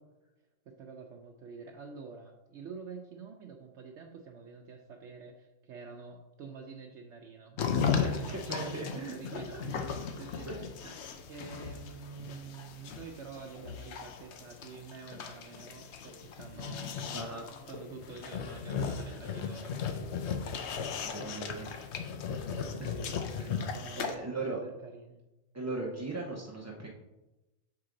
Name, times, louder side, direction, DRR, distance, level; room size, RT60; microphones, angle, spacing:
voice 1, 0.7-10.9 11.3-19.8 22.9-25.2, right 5 dB, 70° right, 2 dB, 0.9 m, -47 dB
sound 1, 7.6-24.1, left 6 dB, 65° left, 0.8 m, -36 dB
voice 2, 8.0-9.4 10.5-10.6 10.8-10.9 17.1-17.5 21.0-21.8 22.6-22.9 23.4-23.5 23.9-24.6 25.5-26.9, right 3 dB, 20° right, -3 dB, 0.4 m, -38 dB
6.5 x 4.8 x 3.8 m, 1.0 s
omnidirectional pair, 1.4 m